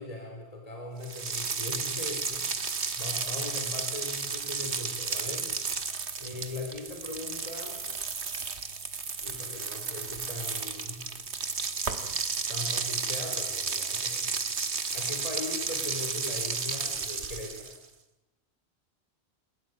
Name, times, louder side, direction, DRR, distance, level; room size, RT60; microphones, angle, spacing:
voice 1, 0.0-2.5 2.9-5.5 6.2-7.8 9.2-11.0 12.5-14.3 14.9-17.8, left 2 dB, 35° left, 1 dB, 4.4 m, -39 dB
sound 1, 1.0-17.8, right 5 dB, 85° right, 1.9 m, -33 dB
28.0 x 17.0 x 9.7 m, 0.98 s
omnidirectional pair, 1.1 m